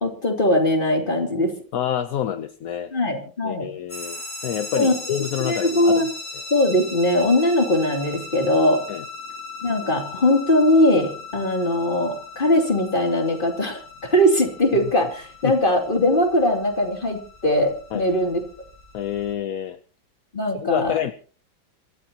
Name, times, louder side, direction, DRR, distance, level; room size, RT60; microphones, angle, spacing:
voice 1, 0.0-1.5 2.9-3.7 4.8-5.0 5.4-6.1 6.5-8.8 9.6-18.4 20.3-21.0, left 1 dB, 25° left, 3 dB, 3.1 m, -20 dB
voice 2, 1.7-2.9 3.4-6.1 8.9-9.0 14.8-14.9 15.4-15.6 17.9-18.0 18.9-19.8 20.5-21.1, left 9 dB, 60° left, 10 dB, 1.1 m, -27 dB
sound 1, 3.9-19.3, left 3 dB, 40° left, 6.0 m, -38 dB
26.5 x 13.0 x 2.9 m, 0.39 s
omnidirectional pair, 2.1 m